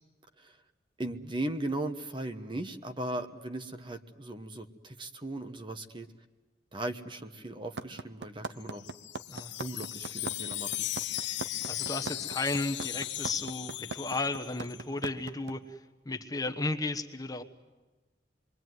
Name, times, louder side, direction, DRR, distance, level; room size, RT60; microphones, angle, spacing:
voice 1, 1.0-6.1 6.7-8.8 9.6-10.9, right 1 dB, 30° right, 8 dB, 1.3 m, -37 dB
sound 1, 7.8-15.5, right 3 dB, 75° right, 1.1 m, -38 dB
Wind chime, 8.6-14.8, left 15 dB, 85° left, 0.8 m, -37 dB
voice 2, 11.7-17.4, left 3 dB, 20° left, 6 dB, 1.2 m, -34 dB
27.0 x 23.0 x 9.5 m, 1.2 s
head